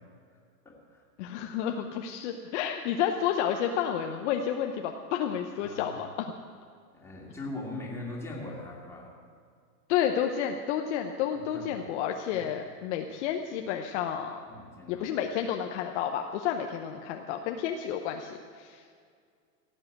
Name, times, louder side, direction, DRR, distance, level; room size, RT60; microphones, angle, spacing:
voice 1, 0.6-1.0 5.6-6.0 6.9-9.1 11.3-11.9 12.3-12.5 14.5-15.1, left 2 dB, 5° left, -3 dB, 2.6 m, -41 dB
voice 2, 1.2-6.3 9.9-14.4 14.9-18.8, left 9 dB, 45° left, 4 dB, 0.9 m, -31 dB
16.5 x 7.6 x 8.1 m, 2.1 s
hypercardioid pair, 140°, 49 cm